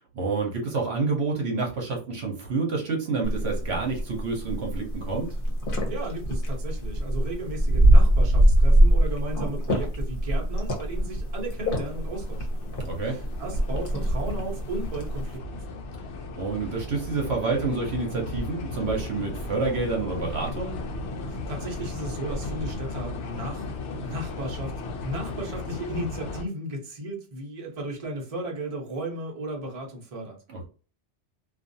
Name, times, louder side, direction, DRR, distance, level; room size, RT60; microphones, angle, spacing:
voice 1, 0.1-5.3 12.8-13.2 16.3-20.8 30.5-30.6, right 4 dB, 65° right, 1.1 m, -28 dB
sound 1, 3.2-15.4, right 1 dB, 50° left, 1.0 m, -23 dB
voice 2, 5.8-12.8 13.0-15.8 21.3-24.7 25.0-30.4, right 1 dB, 35° right, 0.9 m, -35 dB
sound 2, 10.5-26.4, left 2 dB, 80° left, 0.9 m, -36 dB
2.5 x 2.4 x 2.6 m
omnidirectional pair, 1.2 m